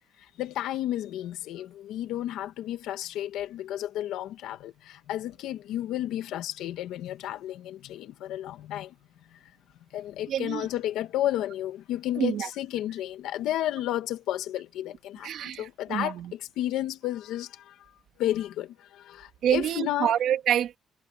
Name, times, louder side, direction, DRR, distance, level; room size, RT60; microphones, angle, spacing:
voice 1, 0.4-8.9 9.9-17.7 18.2-20.1, left 13 dB, 90° left, 1.8 m, -32 dB
voice 2, 10.3-10.6 12.2-12.5 15.2-16.3 19.4-20.8, right 10 dB, 75° right, 2.7 m, -27 dB
cardioid pair, 90°, 0 cm